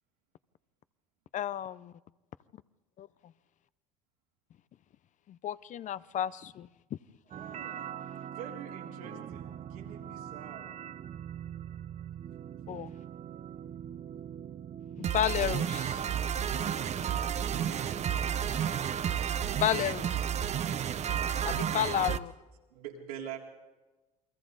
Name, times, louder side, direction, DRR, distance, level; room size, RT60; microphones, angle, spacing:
voice 1, 1.3-1.9 3.0-3.3 5.3-6.7 12.7-12.9 15.0-16.0 19.6-20.2 21.4-22.3, left 11 dB, 40° left, 17 dB, 0.6 m, -32 dB
sound 1, 7.3-22.2, right 9 dB, 35° right, 0.8 m, -34 dB
voice 2, 7.3-10.7 17.5-17.8 21.1-22.1 22.7-23.4, right 8 dB, 80° right, -2 dB, 3.8 m, -46 dB
29.0 x 23.0 x 4.0 m, 1.2 s
hypercardioid pair, 70°, 19 cm